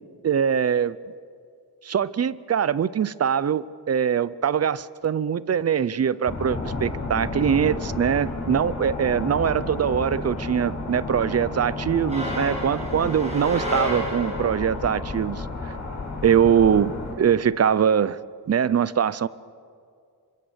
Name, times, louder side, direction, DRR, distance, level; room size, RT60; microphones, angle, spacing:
voice 1, 0.2-1.0 1.8-15.7 16.2-18.2 18.5-19.3, right 8 dB, 40° right, 18 dB, 0.6 m, -22 dB
sound 1, 6.3-17.1, left 3 dB, 40° left, 7.2 m, -32 dB
sound 2, 12.1-14.7, equal, 15° right, 7.7 m, -31 dB
28.0 x 25.0 x 7.9 m, 2.3 s
wide cardioid pair, 180°, 41 cm